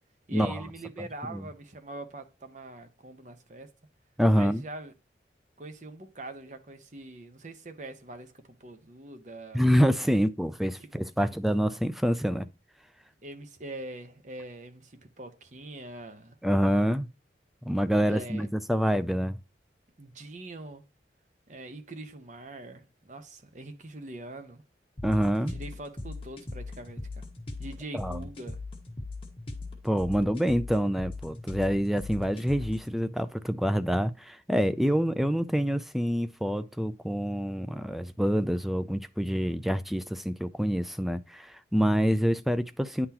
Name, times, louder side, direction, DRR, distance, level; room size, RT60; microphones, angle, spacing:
voice 1, 0.3-3.7 4.3-4.9 5.6-9.7 10.0-10.2 10.8-10.9 11.2-11.3 13.2-16.4 18.0-18.5 20.0-20.8 21.5-24.6 25.5-27.3 27.6-28.6, right 2 dB, 45° right, 0.9 m, -43 dB
voice 2, 1.0-1.4 4.2-4.6 9.5-12.5 16.4-17.1 17.6-19.4 25.0-25.5 27.9-28.2 29.8-43.1, equal, ahead, 0.4 m, -26 dB
sound 1, 25.0-33.0, left 2 dB, 30° left, 1.4 m, -40 dB
9.7 x 3.8 x 2.9 m
head